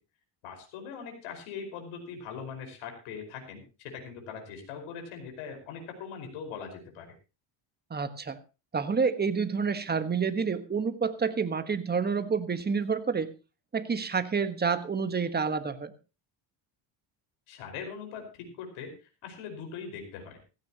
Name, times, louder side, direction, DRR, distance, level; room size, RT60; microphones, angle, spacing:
voice 1, 0.4-7.1 17.5-20.4, left 6 dB, 85° left, 4 dB, 5.3 m, -41 dB
voice 2, 7.9-8.4 8.7-13.3 13.7-15.9, right 5 dB, 20° right, 10 dB, 1.4 m, -28 dB
16.0 x 15.5 x 3.0 m, 0.31 s
cardioid pair, 120°, 47 cm